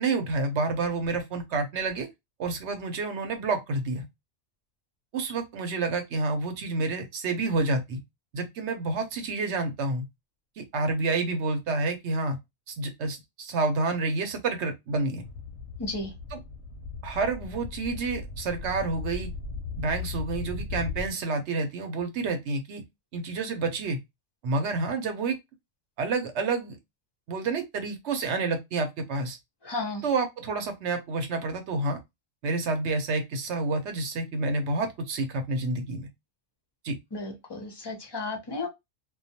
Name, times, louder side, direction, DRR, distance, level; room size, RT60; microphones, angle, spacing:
voice 1, 0.0-2.1 2.4-4.0 5.1-8.0 8.3-10.0 10.6-12.4 12.7-15.2 16.3-16.4 17.0-19.3 19.8-22.8 23.1-24.0 24.4-25.4 26.0-26.8 27.3-29.4 30.0-32.0 32.4-36.1 36.8-37.0, right 3 dB, 65° right, 0.9 m, -29 dB
sound 1, 15.2-21.1, left 4 dB, 65° left, 0.8 m, -37 dB
voice 2, 15.8-16.1 29.6-30.0 37.1-38.7, left 2 dB, 30° left, 0.5 m, -33 dB
2.3 x 2.2 x 2.7 m
omnidirectional pair, 1.3 m